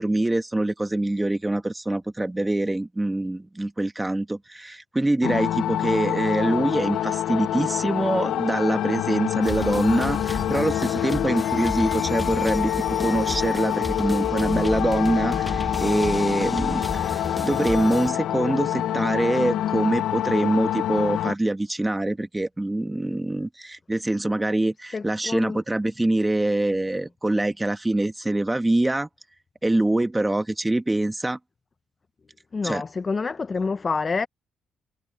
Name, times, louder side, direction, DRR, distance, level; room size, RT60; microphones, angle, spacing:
voice 1, 0.0-29.1 29.6-31.4 32.6-32.8, right 1 dB, 15° right, 1.6 m, -24 dB
sound 1, 5.2-21.3, left 12 dB, 80° left, 0.5 m, -26 dB
sound 2, 9.4-18.1, left 1 dB, 10° left, 0.8 m, -33 dB
voice 2, 24.9-25.6 32.5-34.3, left 4 dB, 35° left, 0.6 m, -27 dB
cardioid pair, 90°, 0 cm